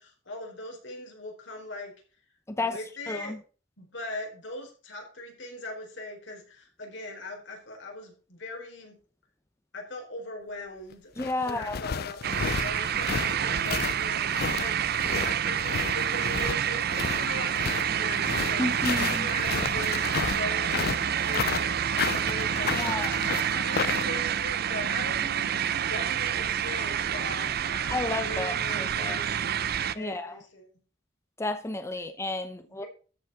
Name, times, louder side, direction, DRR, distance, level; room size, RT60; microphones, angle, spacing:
voice 1, 0.0-1.9 2.6-3.3 3.8-9.0 9.7-11.1 11.4-14.8 15.2-18.7 19.1-21.0 21.2-30.7 32.5-32.9, left 2 dB, 80° left, 4.4 m, -40 dB
sound 1, 10.9-24.1, left 6 dB, 55° left, 0.5 m, -32 dB
voice 2, 11.2-11.8 18.6-19.3 22.8-23.3 27.9-29.2 30.0-30.4 31.4-32.8, left 2 dB, 15° left, 0.7 m, -32 dB
sound 2, 12.2-29.9, right 9 dB, 55° right, 0.6 m, -28 dB
13.0 x 6.0 x 5.7 m
head